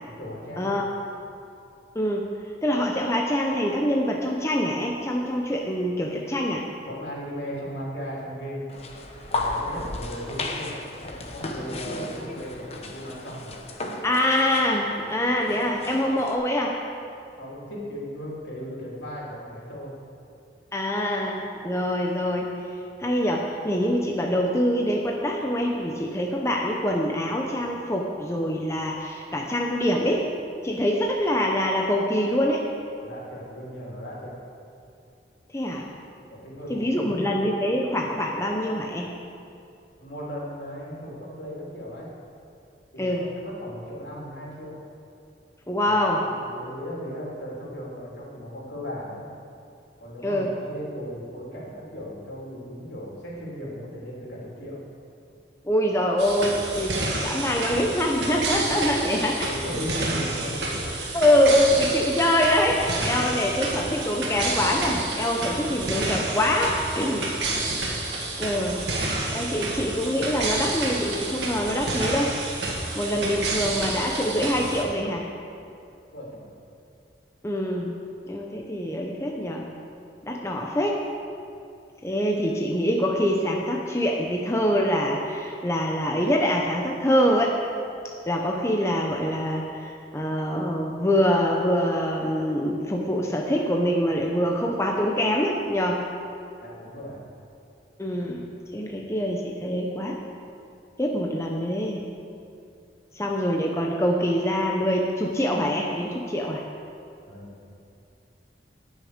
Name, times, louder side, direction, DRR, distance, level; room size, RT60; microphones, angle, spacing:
voice 1, 0.0-0.7 6.9-8.7 9.3-13.6 17.4-19.9 33.0-34.4 36.3-37.2 40.0-42.1 42.9-44.8 45.8-49.3 50.0-54.8 59.2-61.0 63.5-64.1 76.1-76.4 96.6-97.2 107.3-107.5, equal, 75° left, -5 dB, 3.4 m, -37 dB
voice 2, 1.9-2.3 2.6-6.6 14.0-16.8 20.7-22.5 23.0-30.3 30.6-32.7 35.5-35.9 36.7-39.1 43.0-43.2 45.7-46.2 50.2-50.5 55.6-59.5 61.1-67.3 68.4-68.8 69.3-72.4 73.0-75.3 77.4-77.9 78.3-79.6 80.2-81.0 82.0-87.6 88.3-96.1 98.0-100.2 101.0-102.0 103.1-106.6, equal, 15° left, 0 dB, 0.8 m, -24 dB
sound 1, 8.7-16.3, left 2 dB, 35° left, 1.0 m, -34 dB
sound 2, 56.2-74.8, right 2 dB, 75° right, 2.1 m, -29 dB
18.0 x 6.5 x 5.1 m, 2.6 s
head